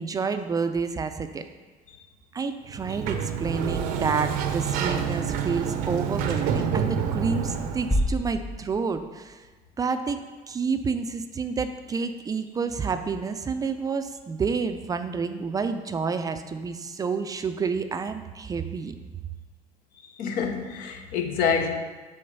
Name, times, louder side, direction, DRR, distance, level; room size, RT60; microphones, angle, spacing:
voice 1, 0.0-1.4 2.3-9.4 9.8-10.2 10.5-18.9, right 5 dB, 25° right, 9 dB, 0.4 m, -29 dB
Sliding door, 2.7-8.0, right 7 dB, 80° right, 0.6 m, -28 dB
sound 1, 7.9-9.7, left 1 dB, 15° left, 0.7 m, -29 dB
voice 2, 20.2-21.7, left 6 dB, 75° left, 5 dB, 0.9 m, -26 dB
6.7 x 3.8 x 5.4 m, 1.3 s
cardioid pair, 115°, 15 cm